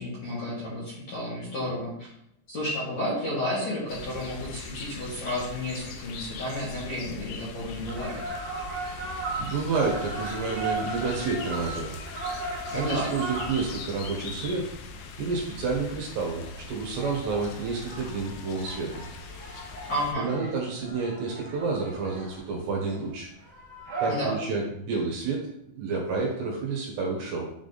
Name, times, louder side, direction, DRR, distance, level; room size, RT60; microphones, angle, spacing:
voice 1, 0.0-2.1 2.5-8.2 12.7-13.1 19.9-20.3 24.1-24.4, left 1 dB, 45° left, -8 dB, 2.6 m, -31 dB
sound 1, 3.9-20.1, left 4 dB, 80° left, 2.4 m, -41 dB
sound 2, 7.9-24.1, right 3 dB, 50° right, 2.2 m, -37 dB
voice 2, 9.4-12.0 12.7-14.7 15.2-19.0 20.2-23.3 24.0-27.4, right 4 dB, 70° right, -1 dB, 3.2 m, -30 dB
9.9 x 3.6 x 4.0 m, 0.74 s
omnidirectional pair, 5.4 m